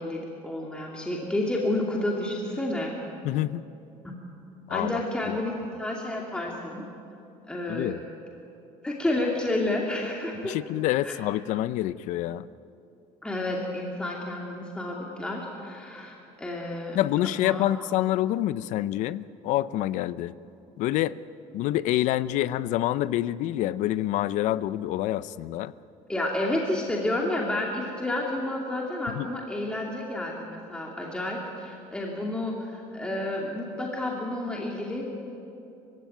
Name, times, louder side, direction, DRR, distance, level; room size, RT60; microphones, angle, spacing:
voice 1, 0.0-2.9 4.0-4.2 4.7-6.9 7.5-7.9 8.8-10.6 11.0-11.2 13.2-17.0 17.2-17.8 26.1-35.0, left 1 dB, 5° left, -2 dB, 2.7 m, -30 dB
voice 2, 3.2-3.6 4.7-5.0 7.7-8.0 10.4-12.5 16.9-20.3 20.8-21.2 21.5-25.7 29.1-29.3, left 14 dB, 70° left, 16 dB, 0.7 m, -27 dB
29.5 x 16.0 x 9.2 m, 2.9 s
cardioid pair, 135°, 13 cm